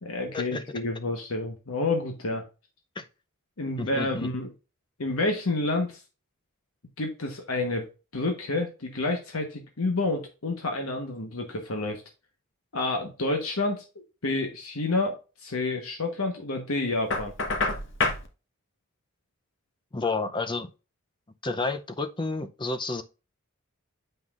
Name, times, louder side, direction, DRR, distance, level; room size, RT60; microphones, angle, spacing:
voice 1, 0.0-2.4 3.6-4.5 5.0-6.0 7.0-7.9 8.1-12.0 12.7-13.8 14.2-15.1 15.4-17.3, left 2 dB, 85° left, 1.2 m, -29 dB
voice 2, 3.8-4.3 19.9-20.7 21.4-23.0, left 3 dB, 20° left, 0.5 m, -30 dB
Knock, 17.1-18.3, left 3 dB, 60° left, 1.1 m, -27 dB
7.9 x 5.5 x 2.4 m
head